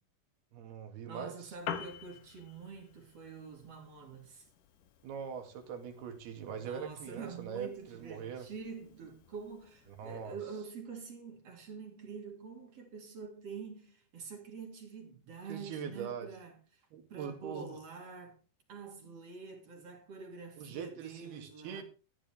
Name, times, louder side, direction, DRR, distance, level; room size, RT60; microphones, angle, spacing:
voice 1, 0.5-1.4 5.0-8.5 10.0-10.4 15.5-16.3 16.9-17.8 20.6-21.8, right 7 dB, 65° right, 3.9 m, -42 dB
voice 2, 1.1-4.5 6.5-16.8 17.1-18.4 18.7-21.8, right 5 dB, 40° right, 3.3 m, -46 dB
Piano, 1.4-10.4, left 8 dB, 65° left, 2.4 m, -49 dB
13.5 x 13.5 x 3.5 m
omnidirectional pair, 4.9 m